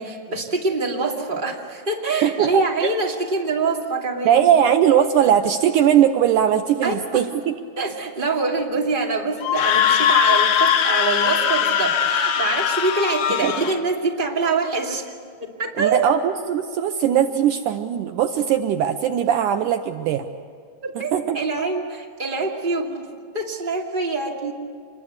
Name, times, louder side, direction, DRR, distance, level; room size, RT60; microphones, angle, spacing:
voice 1, 0.0-4.5 6.8-7.2 7.8-15.1 15.4-16.1 20.8-23.1 23.3-24.5, right 3 dB, 15° right, -1 dB, 1.9 m, -25 dB
voice 2, 2.2-3.0 4.2-7.5 13.4-13.7 15.8-20.3 21.1-21.4, right 9 dB, 90° right, 8 dB, 1.8 m, -19 dB
Screaming, 9.4-13.8, left 9 dB, 65° left, 2.7 m, -20 dB
26.5 x 22.0 x 8.1 m, 2.2 s
omnidirectional pair, 4.6 m